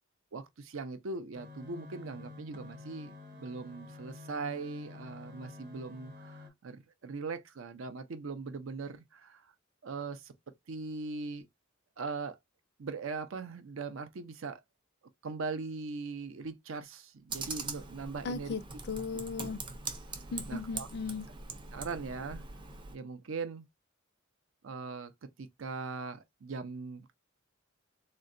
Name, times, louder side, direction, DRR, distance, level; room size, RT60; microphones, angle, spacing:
voice 1, 0.3-9.5 9.8-10.3 10.7-11.5 12.0-12.4 12.8-14.6 15.2-18.5 20.5-20.9 21.7-22.4 22.9-23.6 24.6-27.1, right 4 dB, 75° right, 0.5 m, -40 dB
sound 1, 1.3-6.5, left 3 dB, 45° right, 0.8 m, -49 dB
Computer keyboard, 17.3-23.0, right 4 dB, 25° right, 0.5 m, -42 dB
voice 2, 18.2-18.6 18.9-19.6 20.3-21.3, left 4 dB, 55° left, 0.4 m, -36 dB
3.7 x 2.1 x 2.5 m
head